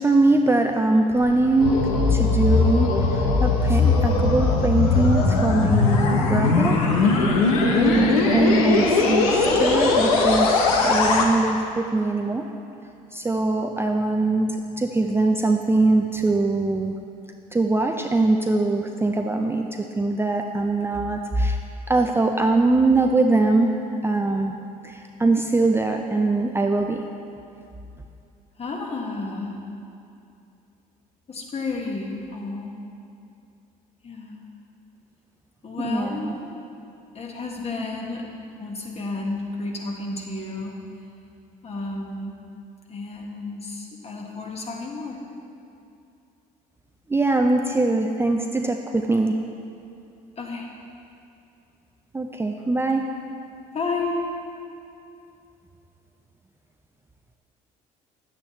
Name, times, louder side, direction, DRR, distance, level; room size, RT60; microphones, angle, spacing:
voice 1, 0.0-6.8 7.1-7.3 7.8-12.4 13.1-17.0 17.5-19.7 20.0-21.6 21.9-23.7 24.0-24.6 24.8-27.0 35.8-36.4 47.1-49.4 52.1-53.1, right 2 dB, 15° right, 3 dB, 0.5 m, -22 dB
sound 1, 1.2-11.3, left 3 dB, 85° left, 0.8 m, -20 dB
voice 2, 28.6-29.6 31.3-32.7 34.0-34.4 35.6-36.5 37.1-38.3 38.6-40.8 41.6-42.4 42.9-45.2 50.4-50.7 53.7-54.3, left 3 dB, 35° left, 0 dB, 1.6 m, -31 dB
9.8 x 8.4 x 3.1 m, 2.6 s
hypercardioid pair, 65°, 18 cm